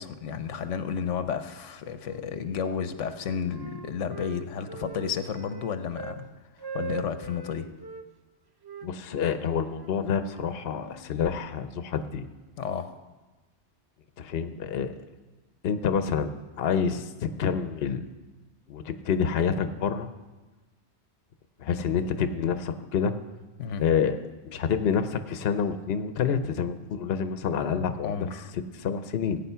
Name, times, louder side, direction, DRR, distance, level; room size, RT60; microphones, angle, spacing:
voice 1, 0.0-6.2 6.7-7.7 12.6-12.9 23.6-23.8 28.0-28.5, left 7 dB, 90° left, 10 dB, 1.1 m, -32 dB
Wind instrument woodwind instrument, 2.0-2.8 3.1-6.2 6.6-8.1 8.6-11.1, right 5 dB, 30° right, 0.4 m, -42 dB
voice 2, 8.8-12.3 14.2-14.9 15.6-16.3 16.6-18.0 18.7-20.1 21.6-23.1 23.8-24.2 24.5-28.3 28.7-29.4, left 7 dB, 60° left, 10 dB, 0.9 m, -27 dB
16.0 x 8.9 x 5.6 m, 1.2 s
omnidirectional pair, 1.2 m